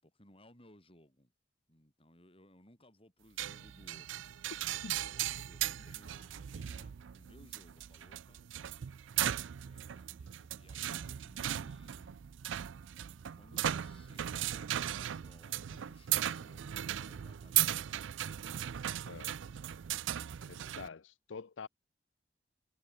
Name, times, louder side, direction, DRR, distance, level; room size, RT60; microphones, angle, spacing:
voice 1, 0.0-1.3 1.7-8.8 9.6-12.3 13.4-17.9, left 1 dB, 30° left, 7.1 m, -62 dB
sound 1, 3.4-20.9, right 12 dB, 80° right, 0.4 m, -37 dB
voice 2, 19.0-19.4 20.5-21.7, left 5 dB, 80° left, 0.6 m, -46 dB
head